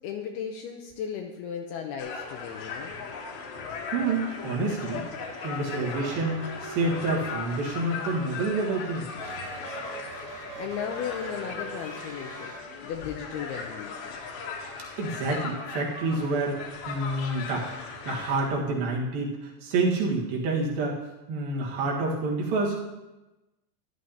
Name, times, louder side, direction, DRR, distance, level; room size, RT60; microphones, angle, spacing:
voice 1, 0.0-3.0 10.2-12.5 12.8-14.2, left 8 dB, 85° left, 3 dB, 2.3 m, -36 dB
sound 1, 2.0-18.5, left 5 dB, 70° left, 2.7 m, -38 dB
voice 2, 3.9-5.0 5.4-9.1 15.0-21.0 21.3-22.8, right 2 dB, 60° right, -3 dB, 3.1 m, -28 dB
sound 2, 5.7-7.9 9.1-12.6, right 4 dB, 85° right, 4.0 m, -42 dB
13.0 x 11.0 x 2.8 m, 1.0 s
omnidirectional pair, 5.1 m